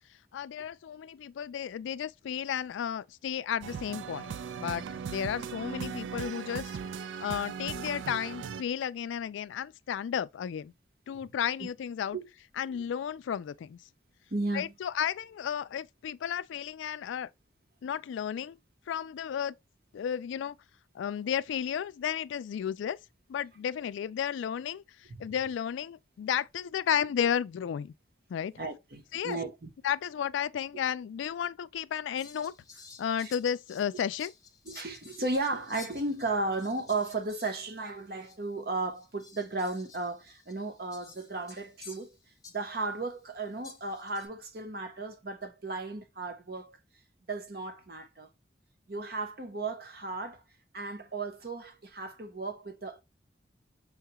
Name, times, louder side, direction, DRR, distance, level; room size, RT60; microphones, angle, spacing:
voice 1, 0.3-6.7 7.2-10.7 11.1-12.2 12.6-13.8 14.5-17.3 17.8-18.5 18.9-19.5 19.9-20.6 20.9-23.0 23.3-24.8 25.2-27.9 28.3-28.5 29.1-29.4 29.8-32.5 33.0-34.3, left 8 dB, 85° left, 0.3 m, -33 dB
sound 1, 3.6-8.6, right 6 dB, 85° right, 0.3 m, -38 dB
voice 2, 14.3-14.7 25.2-25.3 28.6-29.7 33.2-33.3 34.7-42.2 42.5-46.8 47.3-48.3 48.9-50.4 50.7-53.0, right 3 dB, 55° right, 0.9 m, -35 dB
Fowl, 32.1-38.0 38.2-38.4 38.9-42.9 43.6-44.3, left 5 dB, 20° left, 0.9 m, -52 dB
5.6 x 2.3 x 2.8 m
head